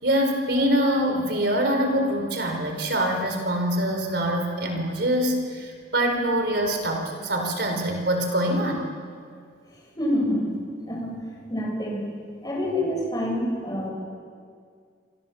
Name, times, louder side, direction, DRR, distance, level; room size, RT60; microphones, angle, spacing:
voice 1, 0.0-8.9, equal, 65° right, 3 dB, 4.8 m, -24 dB
voice 2, 10.0-10.4 10.9-11.1 11.5-12.0 12.4-13.9, left 1 dB, 20° left, -2 dB, 7.8 m, -26 dB
28.0 x 25.5 x 7.4 m, 2.2 s
head